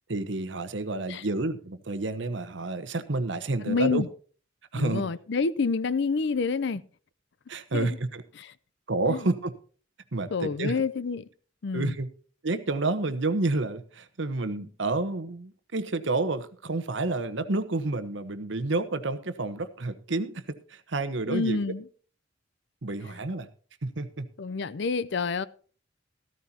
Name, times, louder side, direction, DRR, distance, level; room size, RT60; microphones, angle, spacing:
voice 1, 0.1-4.0 4.7-5.0 7.5-8.2 8.9-9.5 10.1-10.7 11.7-12.1 12.4-21.6 22.8-23.5 23.8-24.3, right 2 dB, 65° right, 1.0 m, -29 dB
voice 2, 3.6-4.1 4.7-6.8 7.7-8.0 8.4-8.5 9.1-9.3 10.3-11.2 11.6-11.9 21.3-21.8 24.4-25.5, left 4 dB, 60° left, 0.5 m, -28 dB
14.0 x 13.5 x 2.8 m
head